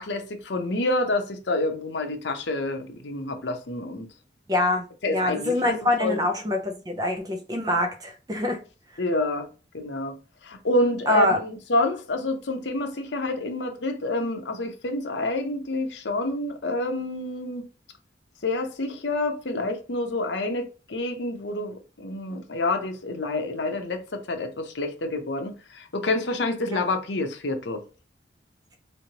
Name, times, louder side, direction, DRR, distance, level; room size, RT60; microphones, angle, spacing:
voice 1, 0.0-4.1 5.0-6.2 9.0-9.5 9.7-10.2 10.4-17.7 18.4-27.8, left 2 dB, 80° left, 0.8 m, -28 dB
voice 2, 4.5-4.9 5.1-8.6 11.1-11.4 26.7-26.8, left 1 dB, 20° right, 0.5 m, -25 dB
3.8 x 3.2 x 2.9 m
head